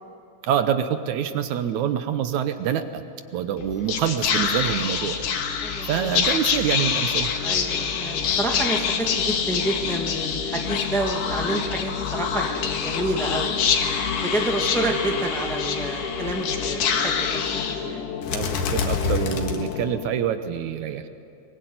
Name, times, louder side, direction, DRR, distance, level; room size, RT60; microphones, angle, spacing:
voice 1, 0.4-3.0 3.3-5.2 5.9-7.3 18.3-21.0, right 9 dB, 70° right, 10 dB, 2.2 m, -26 dB
Whispering, 3.6-20.2, left 6 dB, 90° left, 3.2 m, -26 dB
voice 2, 5.6-6.1 7.4-13.5 14.2-17.5 17.8-18.1, right 2 dB, ahead, 2 dB, 1.0 m, -29 dB
22.5 x 21.0 x 9.4 m, 2.6 s
omnidirectional pair, 3.6 m